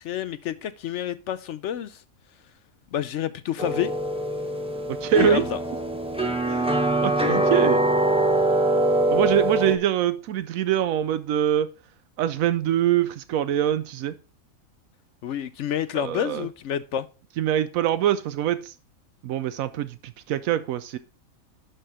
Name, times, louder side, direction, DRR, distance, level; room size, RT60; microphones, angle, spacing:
voice 1, 0.0-2.0 2.9-3.9 5.1-5.6 15.2-17.1, left 10 dB, 65° left, 0.8 m, -28 dB
sound 1, 3.6-9.7, right 1 dB, 5° right, 0.9 m, -23 dB
voice 2, 4.9-5.4 6.5-7.8 9.1-11.7 12.2-14.2 15.9-16.5 17.4-18.7 19.2-21.0, right 10 dB, 85° right, 1.0 m, -24 dB
11.5 x 4.5 x 4.8 m
omnidirectional pair, 1.4 m